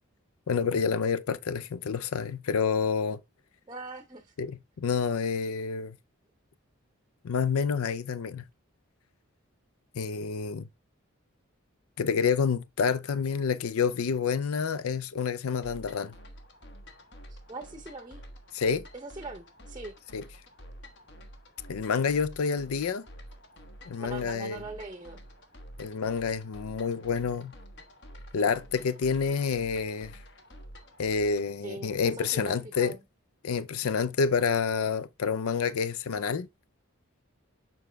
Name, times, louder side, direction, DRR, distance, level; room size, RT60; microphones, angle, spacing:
voice 1, 0.5-3.2 4.4-6.0 7.2-8.4 9.9-10.7 12.0-16.1 18.5-18.9 20.1-20.2 21.7-23.1 23.9-24.6 25.8-27.5 28.3-30.2 31.0-33.0 33.4-36.5, left 6 dB, 85° left, 0.5 m, -28 dB
voice 2, 3.7-4.3 17.3-18.2 18.9-20.0 24.0-25.2 31.6-33.0, right 3 dB, 20° right, 0.7 m, -42 dB
sound 1, 15.6-31.5, equal, 55° left, 1.2 m, -49 dB
7.1 x 4.6 x 3.3 m
head